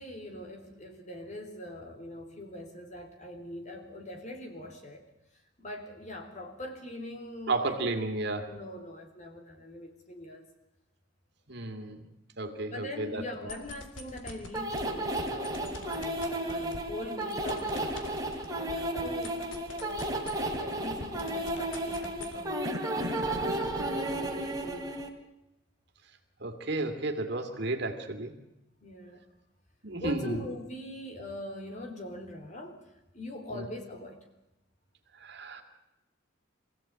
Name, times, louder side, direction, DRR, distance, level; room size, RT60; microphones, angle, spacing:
voice 1, 0.0-5.0 5.6-8.1 8.4-10.5 12.6-18.0 18.5-20.1 20.6-22.6 23.2-24.9 28.8-29.3 30.0-34.2, left 1 dB, 35° left, 3 dB, 3.7 m, -42 dB
voice 2, 7.5-8.5 11.5-12.0 12.4-13.2 26.4-28.3 29.8-30.4 33.5-33.7 35.2-35.6, right 2 dB, 55° right, 5 dB, 2.7 m, -32 dB
sound 1, 13.3-14.8 15.2-20.7 20.9-22.3, left 2 dB, 70° left, 3.5 m, -43 dB
sound 2, 14.5-25.1, right 1 dB, 20° right, 3.1 m, -33 dB
25.5 x 16.0 x 8.9 m, 0.92 s
head